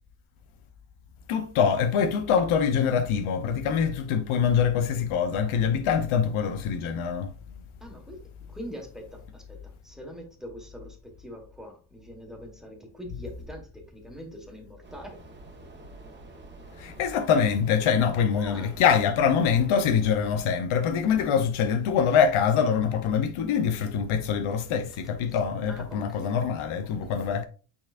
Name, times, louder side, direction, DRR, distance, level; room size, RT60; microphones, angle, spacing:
voice 1, 1.3-7.3 16.8-27.4, left 7 dB, 80° left, 1.0 m, -24 dB
voice 2, 7.8-15.2 18.3-18.8 24.9-25.0 25.3-25.4 25.7-26.4 26.8-27.5, equal, ahead, 1.7 m, -44 dB
sound 1, 14.8-20.4, right 2 dB, 20° right, 1.4 m, -47 dB
8.9 x 4.4 x 2.6 m
cardioid pair, 150°, 48 cm